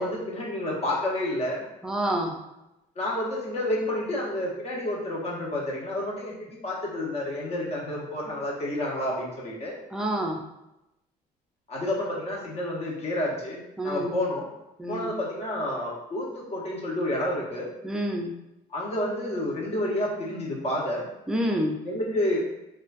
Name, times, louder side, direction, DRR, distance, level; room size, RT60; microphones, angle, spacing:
voice 1, 0.0-1.6 3.0-6.4 6.6-9.7 11.7-13.6 13.8-14.5 14.9-17.7 18.7-21.1 21.8-22.4, left 1 dB, 40° left, -3 dB, 0.8 m, -29 dB
voice 2, 1.8-2.4 9.9-10.4 13.8-14.1 14.8-15.1 17.8-18.3 21.3-21.8, right 1 dB, 5° right, 1 dB, 0.3 m, -28 dB
2.3 x 2.2 x 2.4 m, 0.90 s
cardioid pair, 110°, 17 cm